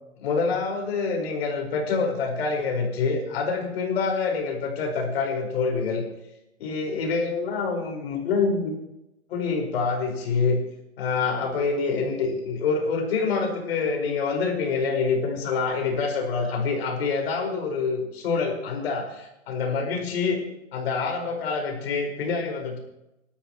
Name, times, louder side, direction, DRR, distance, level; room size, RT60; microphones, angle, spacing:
voice 1, 0.2-6.0 6.6-8.8 9.3-10.6 11.0-20.4 20.7-22.8, left 4 dB, 50° left, 2 dB, 5.1 m, -26 dB
28.5 x 13.0 x 3.1 m, 0.90 s
hypercardioid pair, 155°, 41 cm